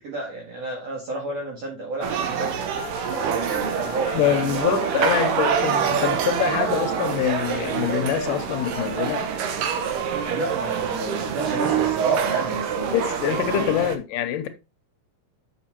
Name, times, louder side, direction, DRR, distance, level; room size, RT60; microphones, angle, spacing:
voice 1, 0.0-4.2 8.4-8.6 10.3-13.0 13.5-13.8, right 2 dB, 55° right, 2.6 m, -32 dB
sound 1, 2.0-14.0, right 7 dB, 80° right, 2.5 m, -25 dB
sound 2, 2.7-13.4, left 4 dB, 15° right, 1.9 m, -42 dB
voice 2, 4.1-9.3 12.9-14.5, left 11 dB, 85° left, 2.3 m, -25 dB
7.2 x 5.8 x 4.3 m
omnidirectional pair, 3.8 m